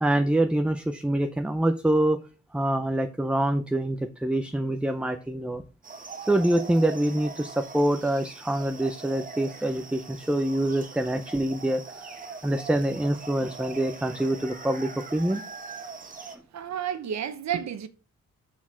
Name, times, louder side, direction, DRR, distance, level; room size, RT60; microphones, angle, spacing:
voice 1, 0.0-2.2 2.5-5.6 6.3-12.0 12.4-15.4, right 1 dB, 5° right, 0.5 m, -25 dB
sound 1, 5.8-16.4, right 4 dB, 30° right, 1.2 m, -42 dB
voice 2, 16.5-17.9, right 9 dB, 70° right, 1.0 m, -31 dB
6.4 x 6.0 x 6.1 m
wide cardioid pair, 160°, 29 cm